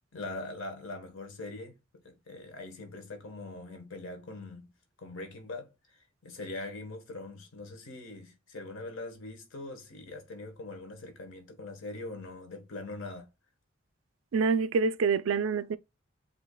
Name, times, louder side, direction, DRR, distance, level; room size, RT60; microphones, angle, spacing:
voice 1, 0.1-4.7 5.0-13.3, left 2 dB, 85° left, 1.2 m, -42 dB
voice 2, 14.3-15.8, right 5 dB, 85° right, 0.4 m, -26 dB
7.8 x 2.7 x 2.2 m
head